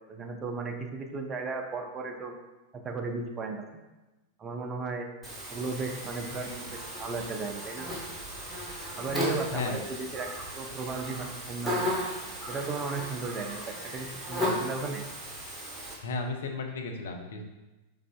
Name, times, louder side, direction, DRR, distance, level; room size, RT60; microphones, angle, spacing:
voice 1, 0.1-2.3 2.7-3.6 4.4-5.1 5.5-7.9 9.0-11.9 12.5-15.0, right 3 dB, 25° right, 3 dB, 0.5 m, -35 dB
Buzz, 5.2-15.9, equal, ahead, 1.3 m, -36 dB
voice 2, 16.0-17.5, left 3 dB, 60° left, 3 dB, 0.5 m, -34 dB
4.9 x 3.3 x 2.3 m, 1.1 s
figure-of-eight pair, 90°, 0 cm